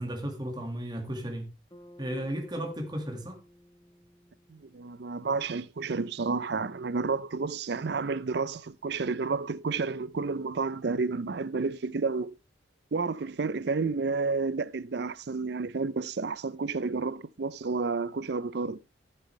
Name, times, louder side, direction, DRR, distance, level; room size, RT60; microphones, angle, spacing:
voice 1, 0.0-1.5 2.0-3.4, equal, 20° right, 1.9 m, -34 dB
Bass guitar, 1.7-6.1, equal, 20° left, 1.3 m, -56 dB
voice 2, 4.5-12.4 12.9-18.8, right 4 dB, 55° right, 0.5 m, -31 dB
12.5 x 7.7 x 3.2 m
head